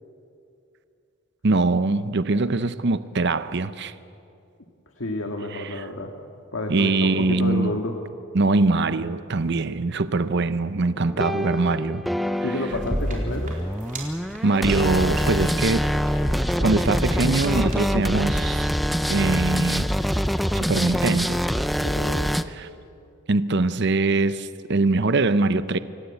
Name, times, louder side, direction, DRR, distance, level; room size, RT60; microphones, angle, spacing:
voice 1, 1.4-3.9 5.5-5.9 6.7-7.7 8.3-12.0 14.4-15.8 16.6-18.7 19.1-19.9 20.5-21.4 22.6-22.7 23.3-25.8, right 3 dB, 55° right, 0.7 m, -22 dB
voice 2, 5.0-6.1 6.5-7.9 12.4-13.6 21.8-22.3, left 1 dB, 70° left, 2.0 m, -29 dB
sound 1, 11.0-22.4, equal, ahead, 0.6 m, -25 dB
sound 2, 12.7-17.8, right 2 dB, 40° right, 4.2 m, -39 dB
27.5 x 18.0 x 8.4 m
head